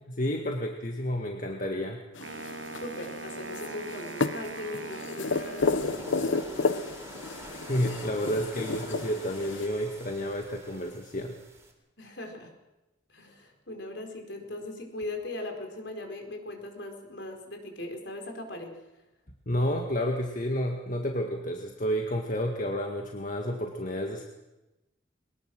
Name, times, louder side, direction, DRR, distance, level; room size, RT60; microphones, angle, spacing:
voice 1, 0.2-2.0 7.7-11.4 19.5-24.2, equal, 45° left, 2 dB, 1.8 m, -30 dB
sound 1, 2.1-9.7, left 3 dB, 80° left, 0.9 m, -32 dB
Wind instrument woodwind instrument, 2.2-6.4, right 4 dB, 80° right, 1.2 m, -42 dB
voice 2, 2.8-6.9 12.0-12.5 13.1-18.8, left 2 dB, 65° left, 3 dB, 4.5 m, -39 dB
sound 2, 5.3-11.7, right 1 dB, 15° right, 3.4 m, -45 dB
22.5 x 20.0 x 6.3 m, 1.0 s
head